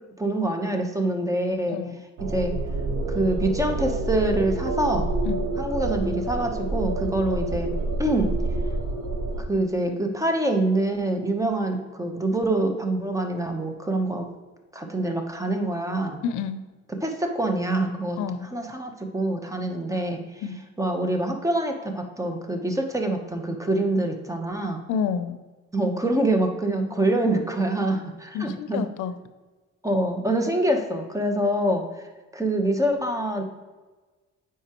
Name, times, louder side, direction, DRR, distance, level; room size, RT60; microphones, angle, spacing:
voice 1, 0.2-1.8 2.3-2.5 3.1-5.1 5.6-7.7 8.0-8.3 9.5-14.3 14.7-16.2 17.0-18.2 18.5-20.2 20.8-24.8 25.7-28.8 29.8-31.9 32.3-33.4, right 1 dB, 10° right, 4 dB, 1.0 m, -25 dB
sound 1, 2.2-9.4, right 2 dB, 85° right, 1.1 m, -27 dB
voice 2, 16.2-16.6 18.2-18.5 20.4-20.6 24.9-25.4 27.9-28.0 28.3-29.2, left 7 dB, 85° left, 11 dB, 0.6 m, -29 dB
7.9 x 4.8 x 3.0 m, 1.3 s
cardioid pair, 90°, 30 cm